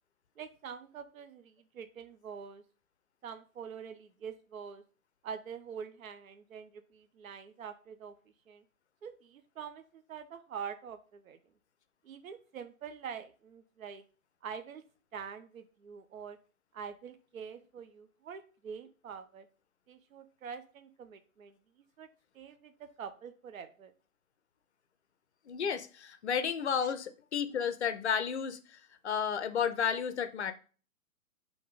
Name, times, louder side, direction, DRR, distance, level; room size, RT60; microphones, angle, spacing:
voice 1, 0.4-2.6 3.2-4.8 5.2-8.1 8.5-8.6 9.0-11.4 12.0-14.0 14.4-14.8 15.1-16.4 16.7-19.5 19.9-21.6 22.0-22.1 22.3-23.9, right 7 dB, 65° right, 9 dB, 0.6 m, -45 dB
voice 2, 25.5-30.5, left 7 dB, 50° left, 11 dB, 0.5 m, -32 dB
3.6 x 3.0 x 3.8 m, 0.39 s
figure-of-eight pair, 125°, 44 cm